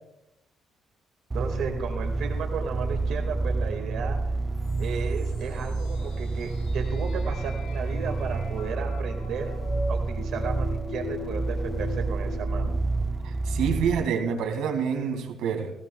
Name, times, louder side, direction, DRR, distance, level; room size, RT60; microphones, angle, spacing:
sound 1, 1.3-14.1, right 3 dB, 20° right, 0.5 m, -29 dB
voice 1, 1.3-4.2 4.8-9.5 9.9-12.7, right 6 dB, 70° right, 3 dB, 1.9 m, -34 dB
sound 2, 4.5-12.7, left 4 dB, 65° left, 4.2 m, -41 dB
voice 2, 13.2-15.7, right 7 dB, 85° right, 4 dB, 2.2 m, -27 dB
17.5 x 17.0 x 2.3 m, 0.91 s
cardioid pair, 120°, 0 cm